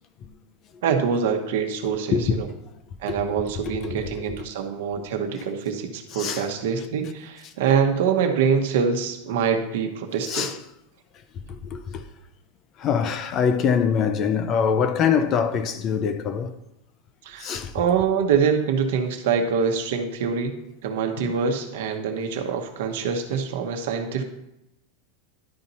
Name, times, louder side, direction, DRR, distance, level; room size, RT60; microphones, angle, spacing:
voice 1, 0.8-2.5 3.0-10.5 17.2-20.6 20.8-24.2, right 6 dB, 60° right, 1.0 m, -25 dB
voice 2, 2.1-2.4 3.7-4.0 6.1-6.5 10.3-10.6 11.5-12.0 12.8-16.5 17.4-17.7 21.2-21.3, left 7 dB, 25° left, 0.4 m, -24 dB
11.5 x 4.3 x 4.1 m
supercardioid pair, 180°, 0 cm